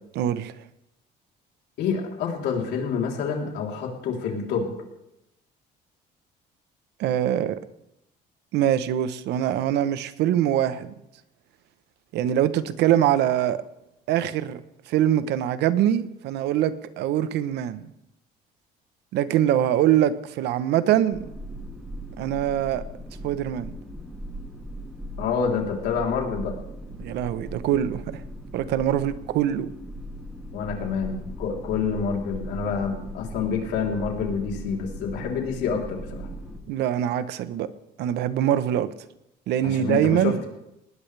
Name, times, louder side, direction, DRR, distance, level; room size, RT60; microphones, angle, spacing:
voice 1, 0.1-0.5 7.0-7.6 8.5-10.9 12.1-13.6 14.1-14.6 14.9-17.8 19.1-21.3 22.2-22.8 23.2-23.7 27.0-28.2 28.5-29.7 36.7-37.7 38.0-38.9 39.5-40.4, right 11 dB, 80° right, 1.1 m, -23 dB
voice 2, 1.8-4.7 25.2-26.5 30.5-36.3 39.6-40.5, left 6 dB, 80° left, 3.7 m, -27 dB
aircraft cabin, 21.1-36.6, right 1 dB, ahead, 7.5 m, -38 dB
20.0 x 19.0 x 3.4 m
cardioid pair, 110°, 17 cm